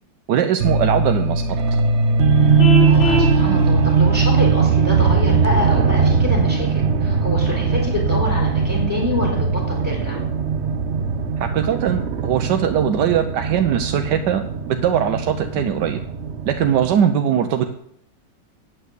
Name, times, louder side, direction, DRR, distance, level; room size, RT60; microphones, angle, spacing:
voice 1, 0.3-1.4 11.4-16.0 16.5-17.7, right 9 dB, 70° right, 7 dB, 1.3 m, -20 dB
sound 1, 0.6-16.9, right 5 dB, 50° right, 0.8 m, -19 dB
Vehicle horn car horn honking, 2.6-3.4, left 3 dB, 80° left, 2.3 m, -21 dB
voice 2, 2.8-10.2, left 1 dB, 20° left, -2 dB, 3.9 m, -26 dB
9.2 x 7.4 x 8.1 m, 0.70 s
omnidirectional pair, 2.1 m